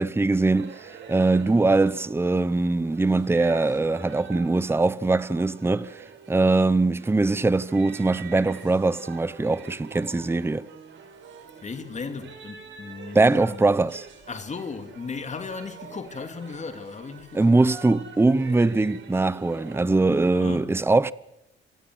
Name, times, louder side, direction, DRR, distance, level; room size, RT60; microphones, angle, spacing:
voice 1, 0.0-10.7 13.1-14.1 17.3-21.1, right 3 dB, 10° right, 0.8 m, -22 dB
sound 1, 0.5-20.3, right 6 dB, 75° right, 4.5 m, -45 dB
voice 2, 11.6-13.7 14.3-17.6 20.1-20.7, left 4 dB, 35° left, 2.5 m, -36 dB
26.5 x 16.0 x 7.6 m
cardioid pair, 90°, 20 cm